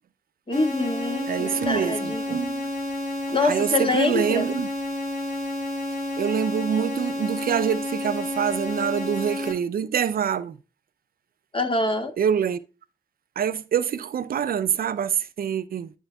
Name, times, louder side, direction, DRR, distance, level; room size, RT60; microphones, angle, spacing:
sound 1, 0.5-9.5, left 1 dB, 60° left, 3.5 m, -30 dB
voice 1, 0.5-2.2 3.3-4.5 11.5-12.1, left 2 dB, 35° left, 1.8 m, -25 dB
voice 2, 1.3-2.7 3.4-4.7 6.2-10.6 12.2-12.6 13.4-15.9, right 8 dB, 85° right, 0.5 m, -25 dB
12.0 x 4.4 x 2.3 m
cardioid pair, 45°, 15 cm